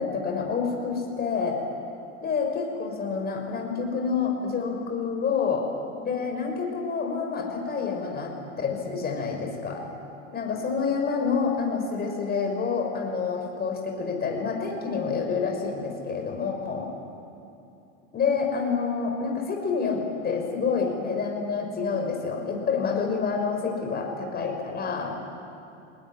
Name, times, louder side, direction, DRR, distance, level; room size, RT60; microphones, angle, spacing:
voice 1, 0.0-1.6 2.2-5.6 6.0-9.8 10.3-16.9 18.1-25.1, left 5 dB, 25° left, 2 dB, 6.1 m, -28 dB
22.5 x 19.5 x 10.0 m, 2.7 s
hypercardioid pair, 105°, 37 cm